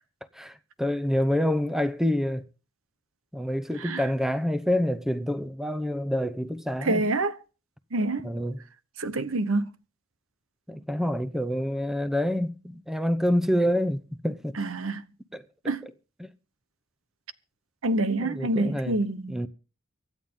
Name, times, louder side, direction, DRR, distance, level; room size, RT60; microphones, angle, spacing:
voice 1, 0.3-2.4 3.3-7.0 8.2-8.6 10.7-14.6 15.3-15.9 16.2-16.3 18.1-19.0 19.3-19.5, equal, ahead, 0.8 m, -27 dB
voice 2, 6.8-7.3 7.9-8.3 9.0-9.7 14.6-15.0 15.7-15.9 17.8-19.4, right 2 dB, 80° right, 1.1 m, -27 dB
25.0 x 9.3 x 3.8 m
head